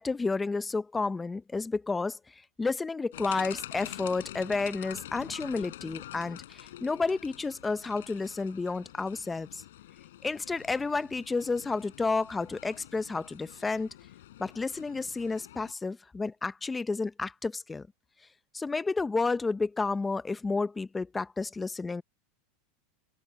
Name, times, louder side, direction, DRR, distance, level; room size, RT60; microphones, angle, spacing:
voice 1, 0.0-2.2 2.6-9.6 10.2-13.9 14.4-17.9 18.5-22.0, left 3 dB, 10° left, 0.7 m, -31 dB
sound 1, 3.1-15.7, left 13 dB, 85° left, 5.8 m, -46 dB
supercardioid pair, 135°, 0 cm